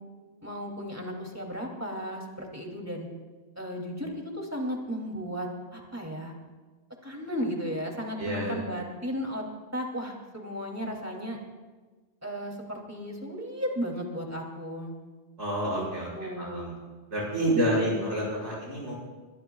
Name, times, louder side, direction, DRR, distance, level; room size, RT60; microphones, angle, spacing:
voice 1, 0.4-3.1 3.6-6.3 7.0-9.4 9.7-11.4 12.2-14.9 15.7-15.9 16.1-16.8 17.5-18.1, equal, 15° right, 0 dB, 2.8 m, -35 dB
voice 2, 8.2-8.6 15.4-16.1 16.4-16.7 17.1-18.9, equal, 80° right, -6 dB, 6.4 m, -28 dB
22.5 x 20.5 x 2.4 m, 1.3 s
omnidirectional pair, 1.1 m